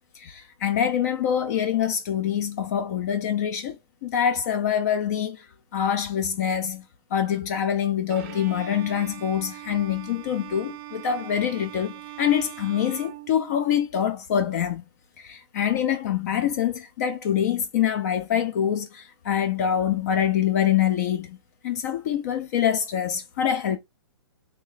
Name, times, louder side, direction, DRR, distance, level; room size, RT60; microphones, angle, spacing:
voice 1, 0.1-5.5 5.7-6.8 7.1-14.8 15.2-21.4 21.6-23.8, left 9 dB, 40° left, 0.4 m, -25 dB
Bowed string instrument, 8.1-14.0, right 14 dB, 25° right, 0.4 m, -41 dB
3.2 x 2.2 x 3.7 m
hypercardioid pair, 145°, 14 cm